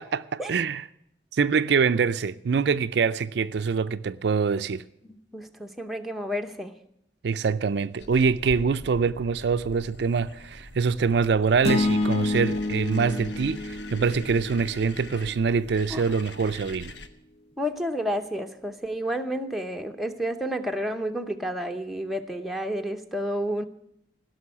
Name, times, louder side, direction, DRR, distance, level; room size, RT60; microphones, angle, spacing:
voice 1, 0.1-0.8 1.3-4.8 7.2-16.9, right 5 dB, 65° right, 0.4 m, -24 dB
voice 2, 5.0-6.7 15.9-16.0 17.6-23.7, equal, ahead, 0.8 m, -30 dB
sound 1, 8.0-17.1, left 1 dB, 70° left, 1.1 m, -43 dB
sound 2, 11.6-15.9, left 2 dB, 35° left, 0.6 m, -29 dB
16.0 x 6.3 x 9.7 m
head